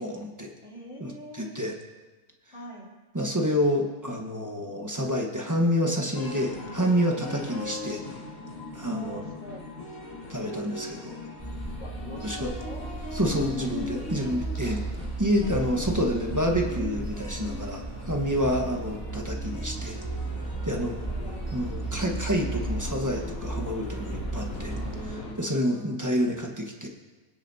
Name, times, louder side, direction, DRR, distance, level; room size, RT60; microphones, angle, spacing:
voice 1, 0.0-0.5 1.0-1.1 1.4-1.7 3.1-8.0 8.7-9.2 10.3-11.2 12.2-12.5 13.1-14.8 15.2-20.0 20.6-20.9 21.5-24.8 25.4-26.9, equal, 15° right, 0 dB, 1.2 m, -28 dB
voice 2, 0.6-1.6 2.5-2.9 8.8-9.7 11.8-12.8 14.2-14.9 15.7-16.6 17.8-18.5 20.6-22.1 24.5-26.0, right 1 dB, 45° left, -5 dB, 3.2 m, -45 dB
sound 1, 6.1-25.3, left 2 dB, 75° left, 2.9 m, -40 dB
sound 2, 11.4-25.1, right 2 dB, 10° left, 2.6 m, -35 dB
24.0 x 8.3 x 2.8 m, 1.2 s
omnidirectional pair, 1.5 m